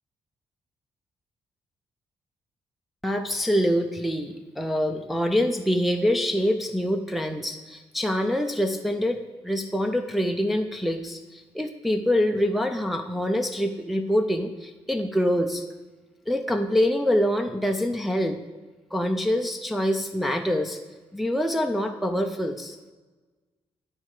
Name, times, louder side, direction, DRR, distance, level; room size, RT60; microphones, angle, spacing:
voice 1, 3.0-15.6 16.3-18.4 18.9-20.8 21.1-22.8, equal, ahead, 3 dB, 0.5 m, -25 dB
11.0 x 4.4 x 4.8 m, 1.3 s
cardioid pair, 105°, 11 cm